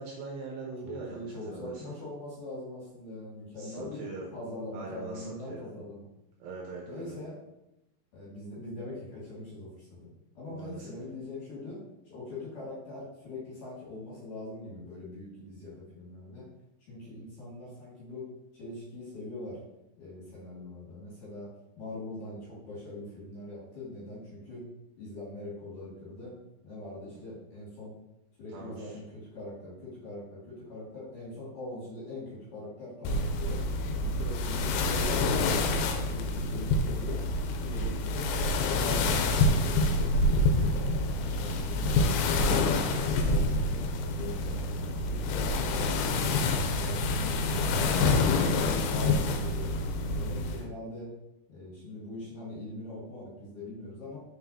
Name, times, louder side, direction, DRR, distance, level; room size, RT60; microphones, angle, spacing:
voice 1, 0.0-1.9 3.6-4.3 4.7-5.7 6.4-7.2 10.5-10.9 27.1-27.2 28.5-29.0 34.2-34.4, right 3 dB, 75° right, -2 dB, 2.7 m, -42 dB
voice 2, 0.8-4.0 4.3-6.1 6.9-7.4 8.1-11.8 12.1-16.4 16.9-18.2 18.5-19.6 20.0-21.5 21.8-24.6 25.0-26.3 26.6-27.9 28.4-33.6 34.0-35.8 36.1-37.2 37.6-38.3 38.6-39.4 39.7-40.9 41.2-43.8 44.2-45.7 46.6-48.0 48.4-49.8 50.2-51.1 51.5-54.2, left 2 dB, 50° left, -8 dB, 3.1 m, -42 dB
sound 1, 33.1-50.6, left 2 dB, 85° left, 3.1 m, -27 dB
6.6 x 5.9 x 2.8 m, 0.88 s
omnidirectional pair, 5.5 m